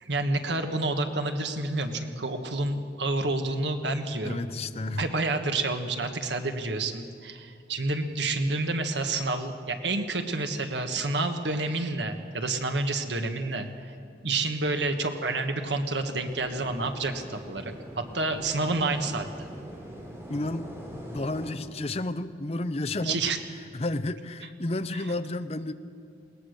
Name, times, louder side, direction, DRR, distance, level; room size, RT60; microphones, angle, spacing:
voice 1, 0.0-4.4 4.8-13.9 14.2-19.3 23.0-23.4 24.9-25.0, right 2 dB, 75° right, 6 dB, 1.5 m, -29 dB
voice 2, 4.2-5.0 20.3-20.7 21.1-23.2 23.7-25.7, left 2 dB, 35° left, 11 dB, 0.7 m, -31 dB
sound 1, 16.3-21.5, equal, 15° right, 3.4 m, -43 dB
21.0 x 18.5 x 6.6 m, 2.5 s
head